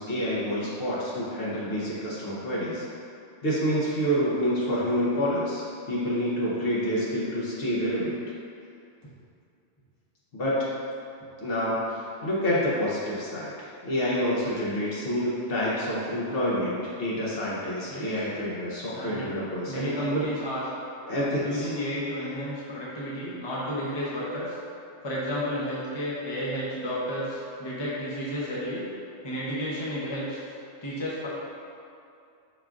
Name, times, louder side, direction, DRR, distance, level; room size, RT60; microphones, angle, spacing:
voice 1, 0.0-2.9 3.4-8.1 10.3-10.6 11.4-20.3 21.1-21.7, equal, 60° left, -7 dB, 0.8 m, -28 dB
voice 2, 17.9-18.3 18.9-19.3 19.7-20.6 21.4-24.6 25.0-28.8 29.2-30.4 30.8-31.3, equal, 30° left, -7 dB, 0.5 m, -32 dB
5.7 x 2.3 x 2.4 m, 2.5 s
omnidirectional pair, 1.2 m